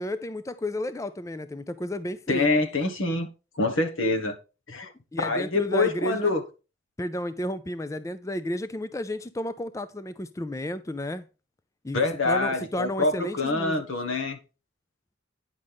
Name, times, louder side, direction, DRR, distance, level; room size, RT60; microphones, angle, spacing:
voice 1, 0.0-2.5 5.1-6.3 7.0-11.3 11.8-13.8, left 1 dB, 15° left, 0.4 m, -32 dB
voice 2, 2.3-3.3 3.5-4.3 4.7-4.9 5.2-6.4 11.9-14.4, left 3 dB, 80° left, 1.5 m, -25 dB
9.8 x 6.4 x 3.5 m
head